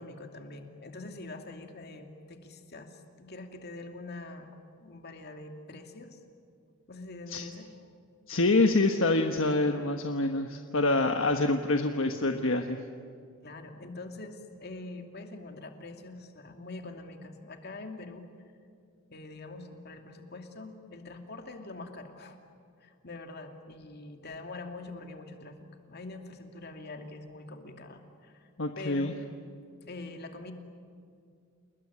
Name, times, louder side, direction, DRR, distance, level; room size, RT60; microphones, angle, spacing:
voice 1, 0.0-6.2 6.9-7.7 13.4-18.3 19.1-22.4 22.8-28.5 28.8-29.2 29.9-30.5, left 2 dB, 50° left, 5 dB, 2.6 m, -44 dB
voice 2, 8.3-12.8 28.6-29.1, left 2 dB, 65° left, 5 dB, 1.3 m, -26 dB
29.5 x 20.5 x 9.8 m, 2.3 s
head